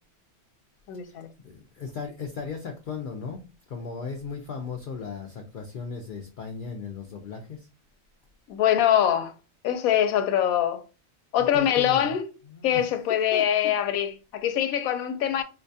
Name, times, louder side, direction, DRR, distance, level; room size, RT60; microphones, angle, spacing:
voice 1, 0.9-1.3 8.5-9.3 9.6-10.8 11.3-12.2 12.6-15.4, left 10 dB, 90° left, 1.0 m, -23 dB
voice 2, 1.4-7.7 11.4-12.2 12.5-12.8 13.3-13.4, left 5 dB, 70° left, 0.4 m, -36 dB
4.6 x 2.2 x 2.6 m
omnidirectional pair, 1.4 m